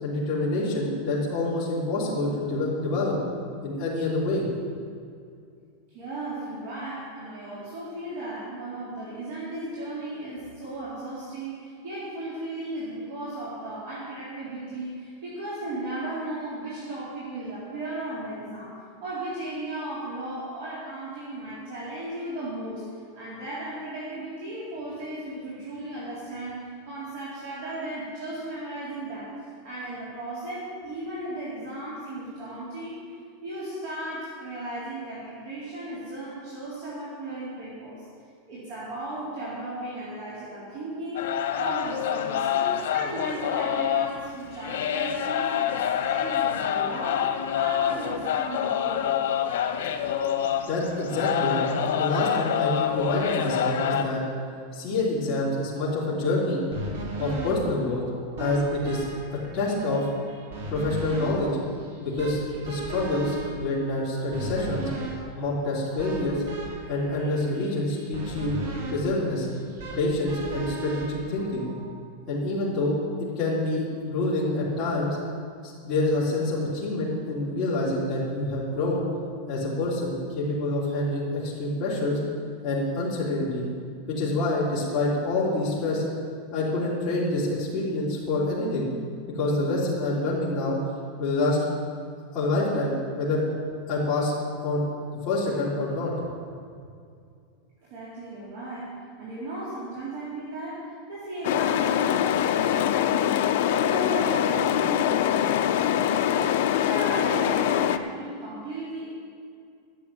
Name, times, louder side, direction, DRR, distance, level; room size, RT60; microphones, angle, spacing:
voice 1, 0.0-3.2 3.6-4.5 50.6-54.2 54.7-56.6 57.2-58.0 58.4-59.1 59.5-60.0 60.7-61.5 62.0-64.9 65.3-66.4 66.9-68.6 68.9-69.5 69.9-71.7 72.3-72.9 73.4-75.2 75.8-79.1 79.5-82.2 82.6-83.6 84.1-86.0 86.5-88.9 89.4-90.8 91.2-91.6 92.3-93.4 93.9-94.3 94.6-94.8 95.3-96.1, left 2 dB, 15° left, -10 dB, 3.6 m, -27 dB
voice 2, 5.9-22.8 23.2-29.3 29.6-33.0 33.4-38.1 38.5-41.2 41.6-49.2 97.8-105.8 106.1-109.1, right 1 dB, 55° right, -9 dB, 4.0 m, -35 dB
sound 1, 41.2-54.0, left 9 dB, 80° left, 1.1 m, -27 dB
sound 2, 56.7-71.9, right 2 dB, 80° right, 3.8 m, -37 dB
sound 3, 101.4-108.0, left 11 dB, 60° left, 0.6 m, -23 dB
12.5 x 7.7 x 8.9 m, 2.3 s
supercardioid pair, 175°, 0 cm